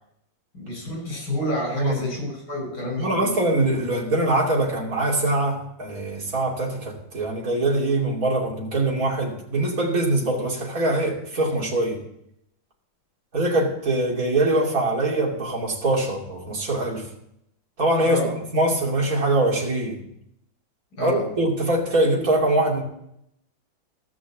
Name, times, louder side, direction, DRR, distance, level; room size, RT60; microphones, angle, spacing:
voice 1, 0.5-3.4 18.0-18.4 21.0-21.2, left 1 dB, 45° left, 0 dB, 6.3 m, -29 dB
voice 2, 1.7-2.0 2.8-12.0 13.3-17.1 17.8-18.2 18.5-20.0 21.0-22.8, right 2 dB, 40° right, -2 dB, 3.2 m, -23 dB
15.0 x 6.1 x 7.4 m, 0.76 s
omnidirectional pair, 2.3 m